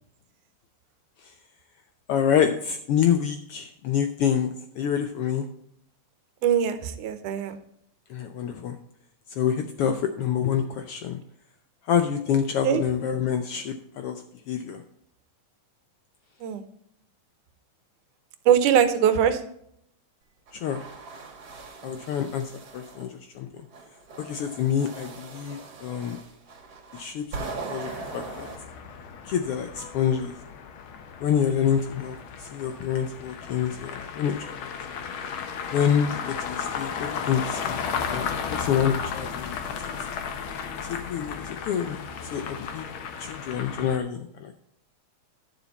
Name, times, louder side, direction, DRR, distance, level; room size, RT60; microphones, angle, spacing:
voice 1, 2.1-5.5 8.1-8.8 9.3-11.2 11.8-14.8 20.6-20.8 21.8-23.5 24.2-26.2 26.9-27.2 27.7-28.5 29.2-30.3 31.2-34.7 35.7-36.2 36.5-39.6 40.8-42.0 42.3-42.9 43.2-44.5, left 8 dB, 85° left, 7 dB, 1.2 m, -27 dB
voice 2, 6.4-7.6 12.6-12.8 16.4-16.6 18.5-19.4, right 9 dB, 85° right, 10 dB, 2.4 m, -21 dB
sound 1, 20.5-23.1 23.7-28.6, right 3 dB, 55° right, 3.0 m, -40 dB
sound 2, 27.8-44.0, left 6 dB, 65° left, 1.3 m, -34 dB
11.5 x 7.1 x 4.0 m, 0.71 s
omnidirectional pair, 3.5 m